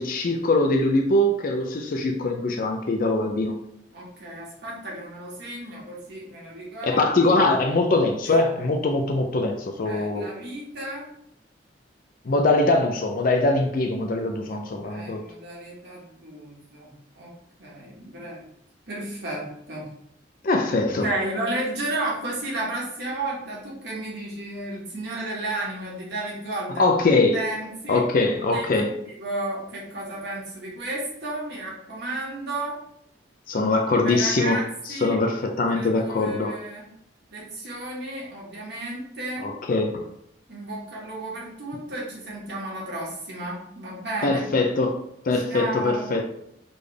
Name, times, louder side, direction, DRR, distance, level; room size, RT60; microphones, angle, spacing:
voice 1, 0.0-3.5 6.8-10.3 12.3-15.2 20.4-21.1 26.8-27.4 27.9-28.9 33.5-34.6 35.0-36.6 39.4-40.0 44.2-45.0 45.2-46.2, left 2 dB, 50° left, 4 dB, 0.4 m, -22 dB
voice 2, 3.9-7.3 8.2-8.5 9.8-11.1 14.5-17.3 17.6-18.4 18.9-19.9 20.8-26.8 27.3-28.1 28.5-32.8 34.0-35.2 35.7-36.9 37.3-39.5 40.5-44.6 45.3-46.2, right 2 dB, 65° right, -5 dB, 1.7 m, -33 dB
4.2 x 3.3 x 3.3 m, 0.74 s
head